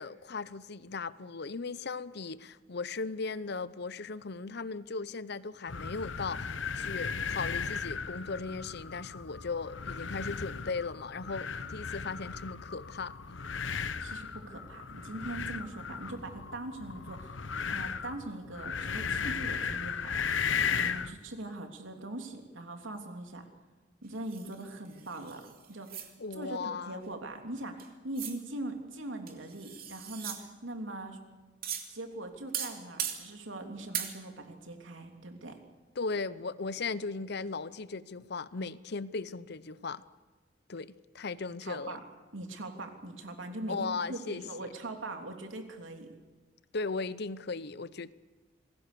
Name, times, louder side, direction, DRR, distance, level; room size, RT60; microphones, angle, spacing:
voice 1, 0.0-13.1 26.2-27.1 36.0-40.0 40.7-42.0 43.7-44.7 46.7-48.1, left 4 dB, 60° left, 0.8 m, -37 dB
sound 1, 5.7-21.2, left 6 dB, 80° left, 1.0 m, -36 dB
voice 2, 14.0-17.4 17.7-23.5 24.0-31.2 31.9-35.6 41.6-42.0 42.3-46.1, right 2 dB, 85° right, 3.2 m, -41 dB
sound 2, 24.3-26.1 27.8-27.9 28.2-28.4 29.3-30.4 31.6-31.9 32.5-33.2 33.9-34.1, right 9 dB, 50° right, 2.8 m, -38 dB
27.0 x 20.0 x 6.9 m
head